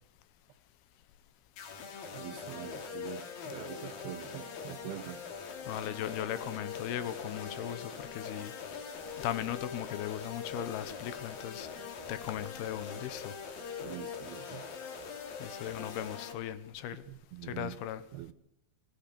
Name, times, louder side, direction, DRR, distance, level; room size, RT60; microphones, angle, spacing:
sound 1, 1.6-16.3, left 6 dB, 70° left, 4.0 m, -42 dB
voice 1, 2.1-5.3 13.8-14.7 17.1-17.8 18.1-18.3, right 14 dB, 85° right, 3.0 m, -44 dB
voice 2, 5.7-8.8 9.2-11.7 12.1-13.4 15.4-17.0 17.4-18.0, left 11 dB, 85° left, 3.0 m, -38 dB
28.5 x 16.0 x 7.0 m
omnidirectional pair, 4.5 m